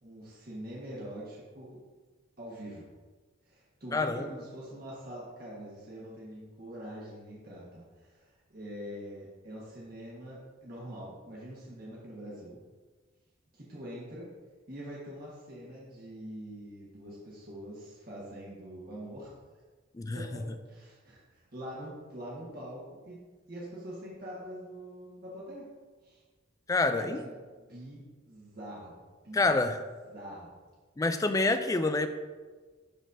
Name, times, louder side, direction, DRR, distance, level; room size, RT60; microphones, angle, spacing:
voice 1, 0.0-1.8 2.4-2.9 3.4-12.6 13.5-14.3 14.7-19.3 20.1-23.2 23.5-25.7 26.0-26.2 26.9-29.5 30.1-30.5, equal, 50° right, -6 dB, 1.4 m, -44 dB
voice 2, 3.9-4.4 19.9-20.5 26.7-27.2 29.3-29.8 31.0-32.1, left 2 dB, 15° left, 9 dB, 0.3 m, -27 dB
12.0 x 4.1 x 2.7 m, 1.4 s
head